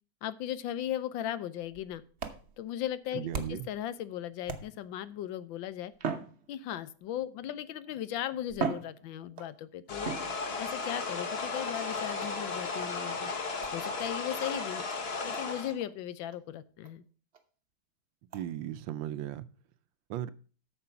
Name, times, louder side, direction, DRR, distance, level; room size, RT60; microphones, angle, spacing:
voice 1, 0.2-2.0 2.6-5.9 6.5-10.1 10.6-13.3 13.7-14.8 15.2-17.0, left 11 dB, 80° left, 15 dB, 1.4 m, -37 dB
sound 1, 1.6-3.8 4.4-5.0 5.9-7.0 7.9-8.0 8.5-9.6 10.0-10.8 12.2-12.5 13.6-13.8 14.4-14.5 14.9-15.0 15.3-15.5 15.8-15.9 16.3-16.4 16.8-16.9 17.3-17.4 18.3-18.5, right 5 dB, 45° right, 1.0 m, -39 dB
voice 2, 3.1-3.7 18.3-19.5 20.1-20.3, right 11 dB, 80° right, 15 dB, 1.3 m, -36 dB
sound 2, 9.9-15.7, left 4 dB, 40° left, 1.1 m, -35 dB
8.8 x 6.9 x 5.7 m, 0.39 s
omnidirectional pair, 2.1 m